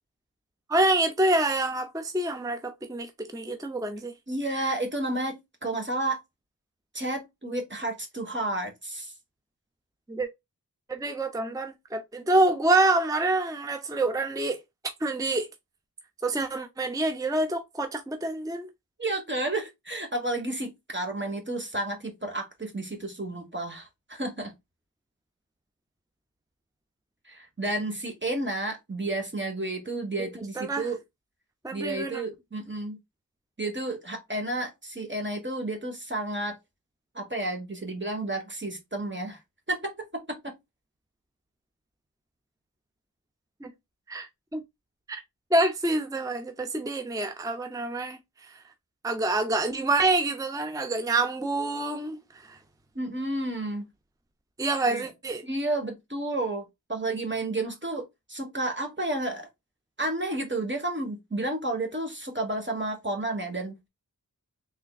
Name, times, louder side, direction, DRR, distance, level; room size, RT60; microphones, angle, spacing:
voice 1, 0.7-4.1 10.1-10.3 10.9-14.6 15.0-15.5 16.2-18.7 30.2-30.3 30.6-30.9 31.6-32.2 43.6-43.7 44.1-44.6 45.1-45.2 45.5-48.6 49.0-52.6 54.6-55.4, right 2 dB, 10° right, 0.5 m, -27 dB
voice 2, 4.3-6.2 6.9-9.1 19.0-24.5 27.2-31.0 31.7-33.0 33.6-36.6 37.1-39.4 39.7-40.5 52.9-53.9 54.8-55.0 55.4-59.5 60.0-63.8, right 2 dB, 30° right, 1.3 m, -31 dB
3.6 x 3.3 x 2.3 m
wide cardioid pair, 45°, 36 cm